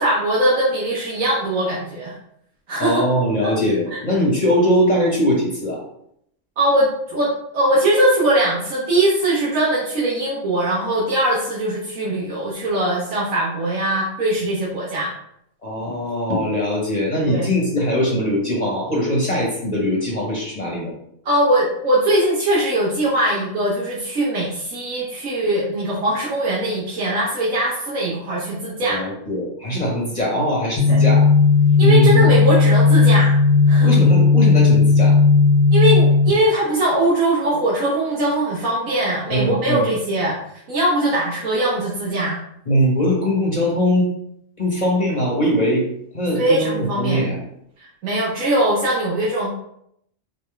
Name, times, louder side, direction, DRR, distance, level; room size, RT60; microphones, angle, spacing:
voice 1, 0.0-2.1 2.7-3.0 3.4-3.5 3.9-4.0 6.6-15.1 17.2-17.5 21.2-29.0 30.9-31.0 31.8-33.3 33.7-33.9 35.7-40.3 40.7-42.4 46.4-47.2 48.0-49.5, right 1 dB, 85° right, -6 dB, 1.5 m, -21 dB
voice 2, 2.8-5.8 15.6-20.9 28.9-31.2 31.8-32.4 33.8-35.2 39.3-39.9 42.7-44.1 44.6-45.8 46.1-47.4, equal, 35° left, -3 dB, 1.0 m, -21 dB
sound 1, 30.8-36.3, left 4 dB, 65° left, 1.0 m, -14 dB
4.0 x 3.7 x 3.3 m, 0.73 s
omnidirectional pair, 1.4 m